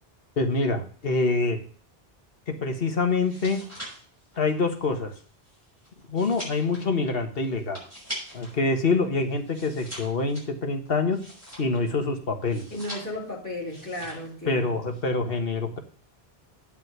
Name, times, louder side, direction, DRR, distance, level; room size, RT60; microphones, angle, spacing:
voice 1, 0.4-1.6 2.6-3.6 4.4-5.1 6.1-7.8 8.3-11.2 11.6-12.6 14.5-15.8, left 3 dB, 65° left, 5 dB, 1.6 m, -25 dB
sound 1, 3.1-8.6 8.9-12.0 12.4-13.3 13.7-14.3 14.6-15.0, equal, 15° right, 6.3 m, -42 dB
voice 2, 12.7-14.7, left 1 dB, 15° left, -4 dB, 3.3 m, -34 dB
9.4 x 5.5 x 6.7 m, 0.44 s
omnidirectional pair, 1.1 m